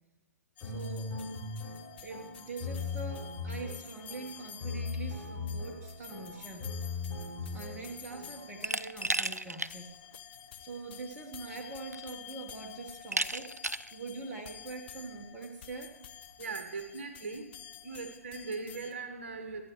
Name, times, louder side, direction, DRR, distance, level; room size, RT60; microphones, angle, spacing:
sound 1, 0.6-18.9, left 10 dB, 40° left, 1.0 m, -50 dB
sound 2, 0.6-8.5, left 4 dB, 10° left, 5.5 m, -39 dB
voice 1, 0.6-1.1 2.0-6.7 7.5-9.9 10.6-13.6 13.9-16.0, right 3 dB, 15° right, 0 dB, 1.4 m, -43 dB
Glass, 8.6-9.7 10.1-10.2 11.4-11.5 11.9-12.3 13.1-13.9, right 2 dB, 90° right, 0.4 m, -33 dB
voice 2, 16.4-17.5 17.8-19.7, right 4 dB, 50° right, 6 dB, 1.3 m, -39 dB
26.0 x 9.2 x 3.1 m, 1.1 s
figure-of-eight pair, 120°, 8 cm